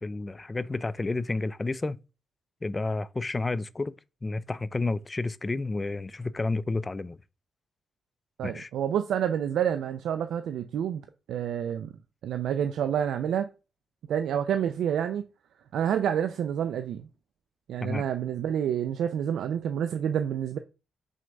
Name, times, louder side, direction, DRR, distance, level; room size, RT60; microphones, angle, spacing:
voice 1, 0.0-2.0 2.6-7.2 8.4-8.7 17.8-18.0, left 3 dB, 20° left, 0.3 m, -31 dB
voice 2, 8.4-11.9 12.2-13.5 14.1-15.2 15.7-17.1 17.7-20.6, right 9 dB, 85° right, 0.5 m, -28 dB
6.2 x 3.4 x 5.3 m
wide cardioid pair, 150°, 0 cm